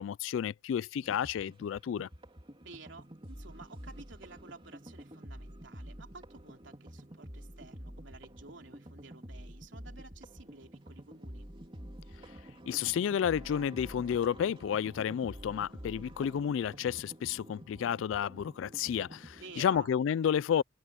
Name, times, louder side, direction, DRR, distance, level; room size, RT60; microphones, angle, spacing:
voice 1, 0.0-2.1 12.7-20.6, left 8 dB, 90° left, 0.3 m, -31 dB
sound 1, 1.0-19.9, equal, 30° right, 3.3 m, -49 dB
voice 2, 2.6-11.5 19.4-20.0, right 3 dB, 75° right, 3.1 m, -52 dB
head